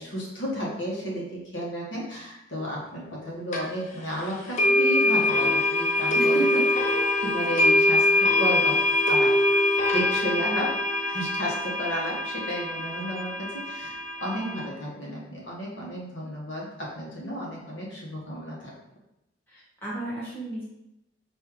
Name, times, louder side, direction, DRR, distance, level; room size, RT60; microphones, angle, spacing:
voice 1, 0.0-6.6 7.2-8.8 9.1-9.3 9.9-18.7, equal, 70° left, -4 dB, 1.2 m, -33 dB
sound 1, 3.5-3.6 4.6-14.6, left 2 dB, 35° left, 0.6 m, -23 dB
voice 2, 6.1-6.8 19.5-20.6, right 3 dB, 10° left, -9 dB, 1.3 m, -32 dB
4.5 x 2.7 x 3.7 m, 0.89 s
head